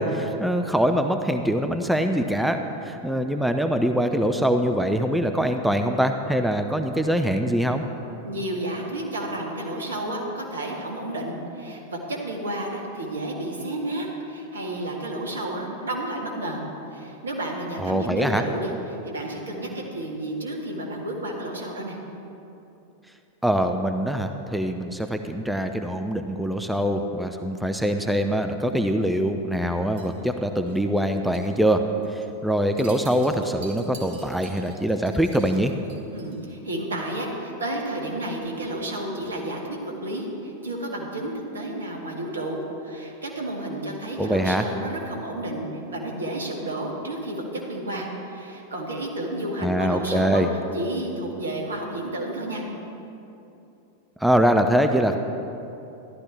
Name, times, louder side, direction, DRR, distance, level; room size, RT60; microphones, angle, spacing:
voice 1, 0.0-7.8 17.8-18.4 23.4-31.8 32.1-35.7 44.2-44.6 49.6-50.5 54.2-55.2, equal, ahead, 6 dB, 0.5 m, -23 dB
voice 2, 8.2-16.6 16.9-18.7 19.0-22.0 36.1-50.4 50.7-52.6, right 1 dB, 70° right, -1 dB, 1.8 m, -31 dB
sound 1, 30.0-31.1 31.3-31.6 31.9-32.3 32.6-36.5, right 4 dB, 55° right, 1.6 m, -47 dB
13.5 x 11.5 x 3.4 m, 2.8 s
figure-of-eight pair, 90°, 0 cm